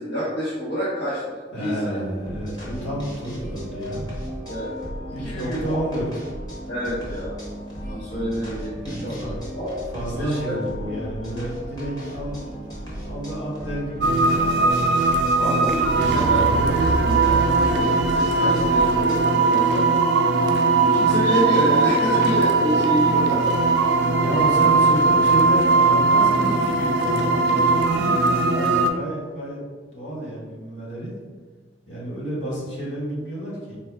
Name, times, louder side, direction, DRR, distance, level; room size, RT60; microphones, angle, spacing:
voice 1, 0.0-2.0 4.5-4.7 5.2-5.8 6.7-7.4 7.8-9.9 10.2-10.6 10.8-10.9 15.4-19.8 20.8-23.9 26.8-26.9, equal, 70° left, -10 dB, 1.0 m, -28 dB
voice 2, 1.5-4.2 5.1-6.0 8.2-8.4 8.8-9.4 9.9-12.5 13.0-14.8 24.2-29.6 29.9-31.1 31.9-33.8, right 1 dB, 90° left, -5 dB, 1.5 m, -30 dB
sound 1, 2.1-19.3, equal, 20° left, 0.9 m, -35 dB
sound 2, 14.0-28.9, right 3 dB, 65° right, 0.4 m, -19 dB
4.4 x 2.3 x 3.5 m, 1.4 s
head